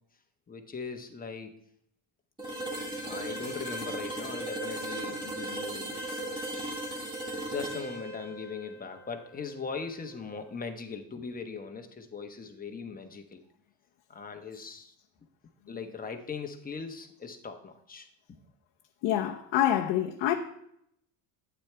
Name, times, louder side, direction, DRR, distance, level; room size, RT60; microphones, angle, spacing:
voice 1, 0.5-1.6 3.0-6.0 7.5-13.4 14.1-14.9 15.7-18.4, left 5 dB, 20° left, 1.1 m, -40 dB
sound 1, 2.4-10.2, right 1 dB, 10° right, 2.2 m, -37 dB
voice 2, 19.0-20.3, left 11 dB, 60° left, 1.0 m, -26 dB
11.5 x 9.1 x 3.4 m
supercardioid pair, 110°, 47 cm